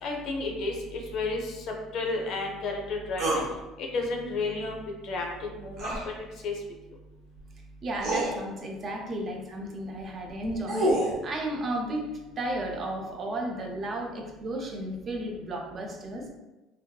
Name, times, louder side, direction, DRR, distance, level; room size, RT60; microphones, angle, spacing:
voice 1, 0.0-1.6 1.9-3.4 3.8-5.9 6.4-6.5, left 3 dB, 60° left, 1 dB, 0.5 m, -32 dB
sound 1, 3.2-3.5 5.8-6.0 7.4-7.5 8.0-8.3 10.3-11.2, right 1 dB, 60° right, 0.8 m, -26 dB
voice 2, 7.8-12.0 12.4-16.3, right 1 dB, 35° right, 1 dB, 0.4 m, -33 dB
2.6 x 2.2 x 2.3 m, 1.1 s
cardioid pair, 120°, 0 cm